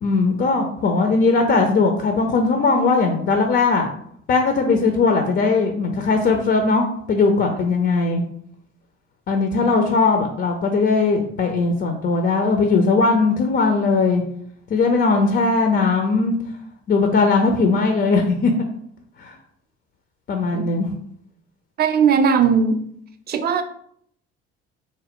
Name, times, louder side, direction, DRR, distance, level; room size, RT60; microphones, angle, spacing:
voice 1, 0.0-3.9 4.3-8.2 9.3-14.2 14.7-16.4 16.9-18.5 19.2-19.3 20.3-20.9, left 4 dB, 35° left, 4 dB, 0.5 m, -19 dB
voice 2, 21.8-22.8 23.3-23.6, right 6 dB, 30° right, 8 dB, 0.5 m, -17 dB
3.7 x 2.1 x 3.5 m, 0.67 s
figure-of-eight pair, 50°, 32 cm